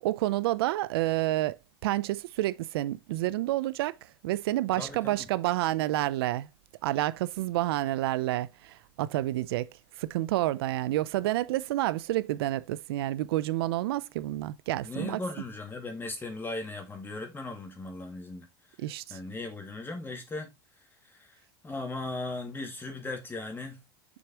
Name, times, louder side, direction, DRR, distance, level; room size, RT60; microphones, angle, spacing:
voice 1, 0.0-1.6 1.8-4.0 4.2-6.5 6.8-9.7 10.0-15.2 18.8-19.2, right 16 dB, 80° right, 0.6 m, -29 dB
voice 2, 4.8-5.3 14.8-18.5 19.1-20.5 21.1-21.3 21.6-23.8, left 2 dB, 15° left, 2.1 m, -37 dB
6.7 x 6.3 x 3.0 m
supercardioid pair, 115°, 13 cm